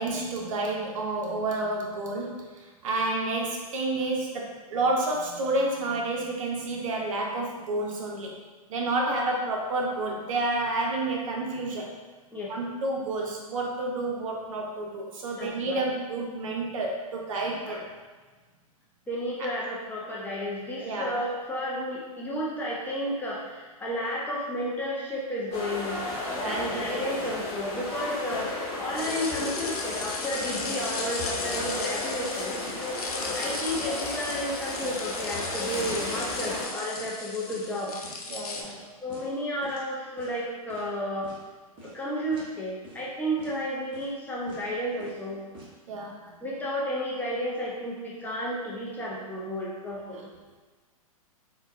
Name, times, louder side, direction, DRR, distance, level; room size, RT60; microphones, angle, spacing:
voice 1, 0.0-8.3 8.7-11.9 12.5-17.8 19.4-19.5 20.8-21.1 26.4-26.7 33.2-33.5 36.4-36.5 38.3-38.8 45.9-46.1, right 2 dB, 60° right, -1 dB, 0.7 m, -30 dB
voice 2, 15.3-15.8 17.6-17.8 19.1-26.0 26.4-28.5 28.8-32.6 33.3-38.0 38.6-38.7 39.0-41.3 41.8-45.4 46.2-50.3, equal, 10° left, -5 dB, 0.5 m, -32 dB
sound 1, 25.5-36.7, left 2 dB, 35° left, 1.0 m, -34 dB
sound 2, 26.1-26.3 26.6-26.9 27.2-27.5 27.7-28.5 28.9-29.1 29.4-30.2 30.5-30.7 31.0-32.4 32.7-32.8 33.2-33.4 33.7-33.9 34.3-35.6 35.9-36.1 36.4-36.7 37.0-37.2 37.5-38.2 38.5-38.8 39.1-39.3 39.6-39.9 40.2-40.9 41.2-41.4 41.8-42.0 42.3-42.5 42.8-43.1 43.4-43.6 43.9-44.2 44.5-44.7 45.0-45.7, right 2 dB, 25° right, 0.8 m, -48 dB
sound 3, 29.0-38.6, left 3 dB, 90° left, 0.5 m, -36 dB
3.7 x 2.2 x 2.4 m, 1.4 s
hypercardioid pair, 110°, 19 cm